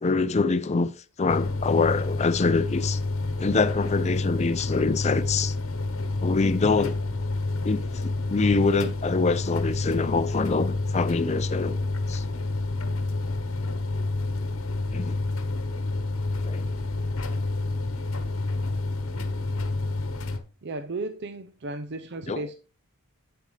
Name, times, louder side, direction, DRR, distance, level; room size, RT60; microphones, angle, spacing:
voice 1, 0.0-0.9 1.2-3.0 3.4-5.5 6.2-7.0 7.6-11.8 12.1-12.2 14.9-15.2 16.4-16.7 22.3-22.4, left 4 dB, 30° left, 0.5 m, -25 dB
sound 1, 1.3-20.4, left 2 dB, 65° left, 1.1 m, -29 dB
voice 2, 20.6-22.5, right 2 dB, 50° right, 0.6 m, -34 dB
8.7 x 7.6 x 3.3 m
head